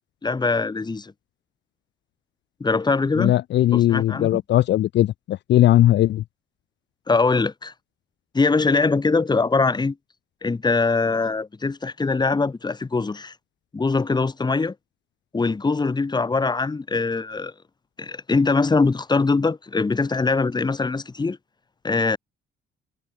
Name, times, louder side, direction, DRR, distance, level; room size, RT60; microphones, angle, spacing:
voice 1, 0.2-1.1 2.6-3.3 3.7-4.4 7.1-7.7 8.3-10.0 10.4-13.3 13.7-14.7 15.3-17.5 18.0-21.4 21.8-22.2, left 4 dB, 20° left, 1.3 m, -22 dB
voice 2, 3.2-6.2, left 13 dB, 65° left, 0.5 m, -18 dB
cardioid pair, 90°, 20 cm